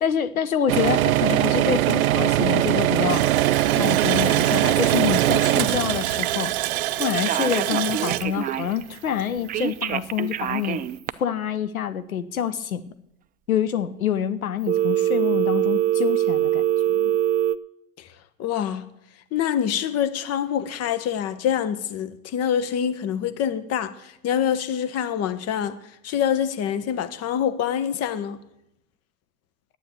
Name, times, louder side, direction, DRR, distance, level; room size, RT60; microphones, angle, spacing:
voice 1, 0.0-3.3 3.7-6.5 7.0-10.8 11.2-12.9 13.5-16.6 16.9-17.1, left 8 dB, 85° left, 1.0 m, -26 dB
sound 1, 0.7-7.6, right 14 dB, 80° right, 0.5 m, -21 dB
Water tap faucet, 3.1-9.6 9.9-10.0 10.5-10.6, right 15 dB, 55° right, 0.9 m, -27 dB
Telephone, 7.2-8.8 9.5-11.1 14.7-17.6, right 11 dB, 20° right, 0.5 m, -23 dB
voice 2, 18.4-18.9 19.3-25.8 26.0-28.4, left 9 dB, 35° left, 1.3 m, -25 dB
12.0 x 9.4 x 8.4 m
hypercardioid pair, 90°, 42 cm